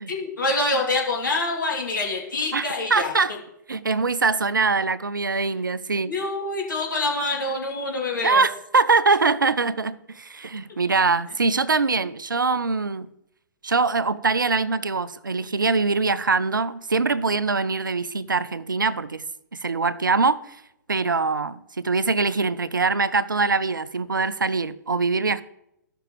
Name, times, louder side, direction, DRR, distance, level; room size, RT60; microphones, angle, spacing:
voice 1, 0.1-3.1 6.1-8.4 10.9-11.0, left 2 dB, 80° left, 2.4 m, -26 dB
voice 2, 2.5-3.3 3.7-6.1 8.2-13.1 13.6-19.2 19.5-20.6 20.9-25.4, right 4 dB, 85° right, 0.5 m, -23 dB
15.0 x 6.0 x 3.0 m
figure-of-eight pair, 115°, 10 cm